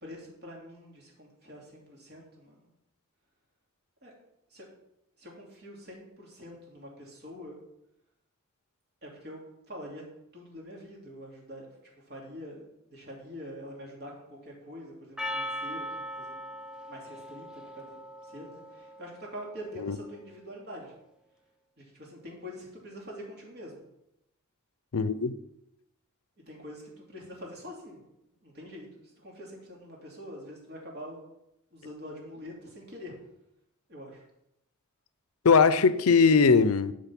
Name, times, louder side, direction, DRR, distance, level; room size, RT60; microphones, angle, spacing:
voice 1, 0.0-2.7 4.0-4.1 4.5-4.7 5.2-7.6 9.0-9.4 9.7-10.0 10.3-16.4 16.9-18.0 18.2-20.9 21.8-23.8 26.5-28.0 28.4-31.2 31.7-33.1 33.9-34.2, equal, 50° right, 2.8 m, -45 dB
Percussion, 15.2-19.7, equal, 5° right, 0.6 m, -39 dB
voice 2, 24.9-25.4 35.4-36.9, left 5 dB, 90° left, 0.6 m, -20 dB
10.5 x 5.2 x 5.9 m
head